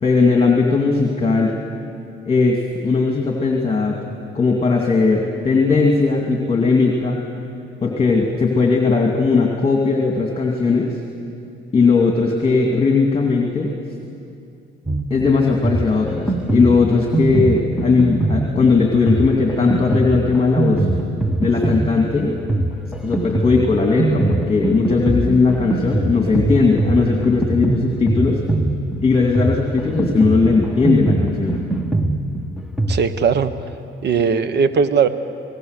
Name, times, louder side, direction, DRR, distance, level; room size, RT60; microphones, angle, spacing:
voice 1, 0.0-1.9 2.2-7.2 7.8-11.0 11.7-13.7 15.1-20.9 21.4-22.3 23.0-28.4 29.0-31.6, left 4 dB, 30° left, 1 dB, 2.5 m, -18 dB
Drum kit, 14.9-33.1, right 2 dB, 5° right, 1.4 m, -22 dB
voice 2, 32.9-33.5 34.0-35.1, right 6 dB, 60° right, 11 dB, 1.3 m, -18 dB
29.0 x 18.5 x 6.7 m, 2.6 s
cardioid pair, 90°, 20 cm